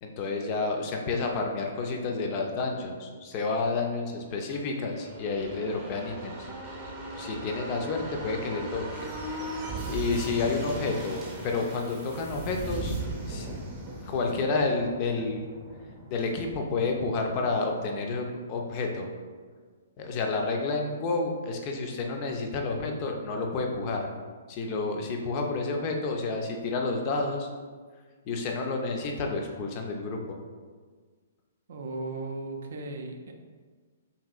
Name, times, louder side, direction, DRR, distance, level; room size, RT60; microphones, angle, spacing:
voice 1, 0.0-6.5 7.2-8.8 9.9-13.0 13.3-13.5 14.0-15.4 16.1-19.1 20.0-24.1 24.5-27.5 28.3-30.4, left 3 dB, 35° left, 2 dB, 0.4 m, -30 dB
sound 1, 4.7-18.2 18.5-18.6, right 2 dB, 30° right, 0.7 m, -38 dB
voice 2, 31.7-33.3, right 2 dB, 60° right, 3 dB, 0.4 m, -36 dB
2.8 x 2.7 x 2.3 m, 1.5 s
figure-of-eight pair, 120°, 0 cm